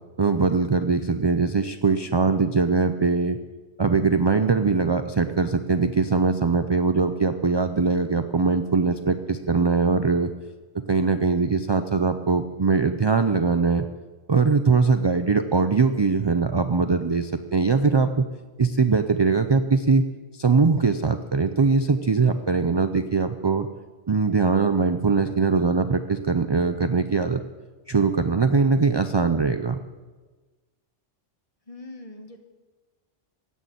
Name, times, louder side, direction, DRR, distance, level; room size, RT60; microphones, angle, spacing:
voice 1, 0.2-3.4 3.8-10.3 10.7-13.9 14.3-18.3 18.6-20.0 20.3-23.7 24.1-27.4 27.9-29.8, right 4 dB, 40° right, 9 dB, 0.3 m, -21 dB
voice 2, 31.7-32.4, left 2 dB, 30° left, 5 dB, 1.4 m, -41 dB
16.0 x 6.4 x 9.2 m, 1.3 s
omnidirectional pair, 1.2 m